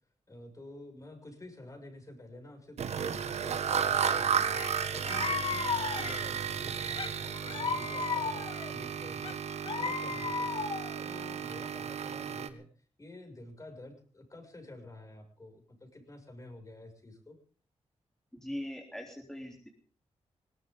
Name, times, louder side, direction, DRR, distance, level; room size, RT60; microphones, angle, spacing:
voice 1, 0.3-9.4 9.6-12.7 13.0-17.4, left 2 dB, 30° left, 5 dB, 6.3 m, -49 dB
sound 1, 2.8-12.5, right 7 dB, 75° right, 1.6 m, -33 dB
sound 2, 4.6-4.7 5.0-6.4 7.0-8.7 9.2-11.0, left 5 dB, 55° left, 1.8 m, -34 dB
voice 2, 18.4-19.7, left 1 dB, 5° left, 0 dB, 3.5 m, -40 dB
21.0 x 18.0 x 3.8 m, 0.41 s
cardioid pair, 85°, 11 cm